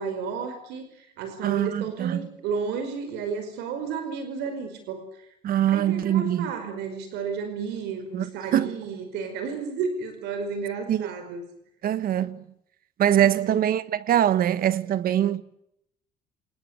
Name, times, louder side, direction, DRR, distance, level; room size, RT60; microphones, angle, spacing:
voice 1, 0.0-5.0 5.7-11.5, right 5 dB, 90° right, 5.3 m, -32 dB
voice 2, 1.4-2.3 5.4-6.5 8.1-8.7 10.9-11.1 11.8-12.4 13.0-15.4, right 11 dB, 60° right, 1.4 m, -23 dB
27.5 x 20.0 x 8.3 m
cardioid pair, 110°, 17 cm